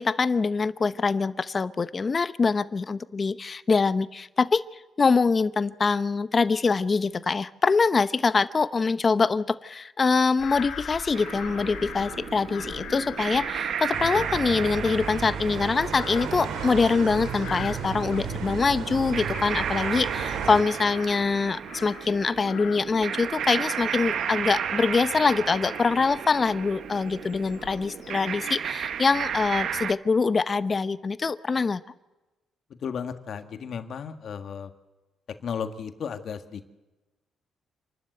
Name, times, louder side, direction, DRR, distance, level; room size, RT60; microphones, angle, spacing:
voice 1, 0.0-4.6 5.0-31.8, left 4 dB, 35° left, 14 dB, 0.9 m, -24 dB
Bird vocalization bird call bird song / Crow, 10.4-18.7 19.1-22.2 22.5-28.5 29.0-29.6, left 7 dB, 80° left, 2.6 m, -42 dB
sound 1, 11.1-29.9, right 8 dB, 65° right, 0.9 m, -34 dB
sound 2, 13.9-20.6, right 6 dB, 85° right, 2.1 m, -34 dB
voice 2, 32.8-34.7 35.4-36.7, left 7 dB, 60° left, 8 dB, 1.7 m, -34 dB
28.0 x 12.5 x 8.0 m, 1.1 s
cardioid pair, 90°, 0 cm